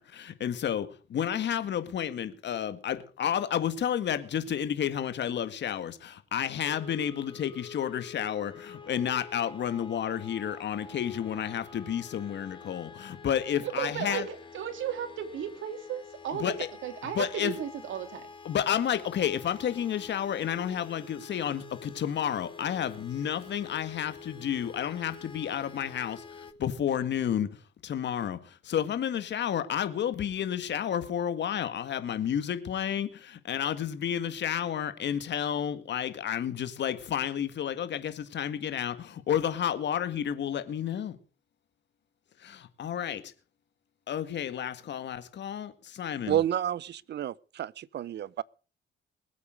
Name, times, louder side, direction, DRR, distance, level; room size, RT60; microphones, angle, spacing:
voice 1, 0.0-14.3 16.3-16.7 17.1-17.5 18.5-41.2 42.4-43.3 44.1-46.4, left 9 dB, 65° left, 1.9 m, -31 dB
sound 1, 6.6-26.5, left 5 dB, 25° left, 1.8 m, -48 dB
voice 2, 13.6-16.5 16.8-18.3, right 9 dB, 75° right, 3.1 m, -35 dB
voice 3, 46.3-48.4, right 11 dB, 60° right, 0.7 m, -30 dB
20.5 x 8.4 x 6.5 m
cardioid pair, 90°, 20 cm